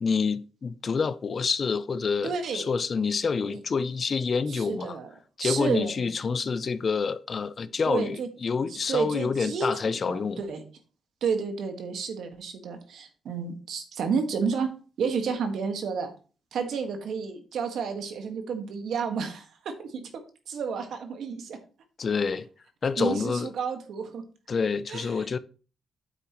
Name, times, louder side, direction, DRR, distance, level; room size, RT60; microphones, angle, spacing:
voice 1, 0.0-5.0 5.4-10.4 22.0-22.5 22.8-23.5 24.5-25.4, left 5 dB, 45° left, 0.5 m, -27 dB
voice 2, 2.2-2.7 4.5-5.1 5.4-6.1 7.9-8.3 8.7-10.6 11.2-14.7 15.0-16.1 16.5-20.2 20.5-21.6 23.0-24.2 24.9-25.1, right 5 dB, 75° right, 1.6 m, -31 dB
8.9 x 7.9 x 3.1 m
cardioid pair, 90°, 0 cm